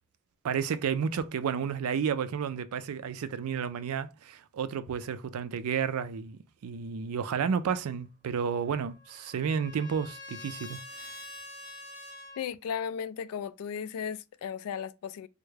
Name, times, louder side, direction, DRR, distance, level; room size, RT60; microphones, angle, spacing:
voice 1, 0.4-11.2, right 7 dB, 85° right, 0.4 m, -31 dB
Trumpet, 8.6-12.4, left 1 dB, 20° left, 0.8 m, -46 dB
voice 2, 12.4-15.3, left 7 dB, 85° left, 0.3 m, -35 dB
3.4 x 2.1 x 3.2 m
head